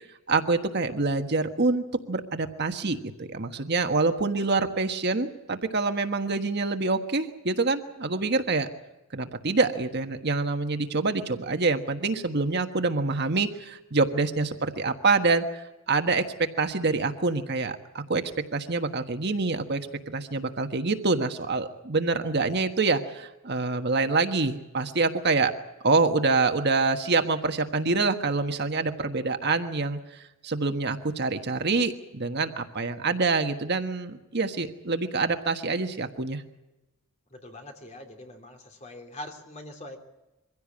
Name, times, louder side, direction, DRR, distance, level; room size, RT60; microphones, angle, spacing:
voice 1, 0.3-8.7 9.1-18.2 18.5-25.5 25.8-30.0 30.4-36.4, right 3 dB, 55° right, 7 dB, 1.4 m, -26 dB
voice 2, 37.3-40.0, left 1 dB, 35° left, 4 dB, 3.0 m, -43 dB
23.5 x 16.0 x 8.6 m, 1.0 s
head